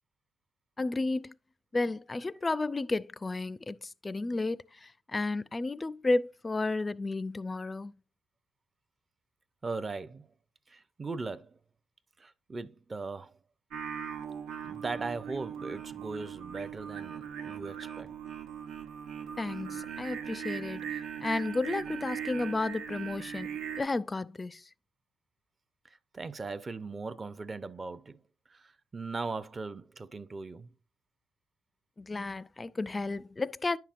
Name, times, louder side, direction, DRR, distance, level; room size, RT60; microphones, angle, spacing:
voice 1, 0.8-1.3 1.7-7.9 19.4-24.7 32.0-33.8, left 2 dB, 25° left, 0.4 m, -32 dB
voice 2, 9.6-10.3 10.7-11.6 12.2-13.4 14.6-18.1 25.8-28.2 28.5-30.7, right 3 dB, 30° right, 0.6 m, -39 dB
Singing, 13.7-23.8, right 8 dB, 90° right, 1.2 m, -39 dB
9.9 x 5.8 x 2.5 m
cardioid pair, 90°, 0 cm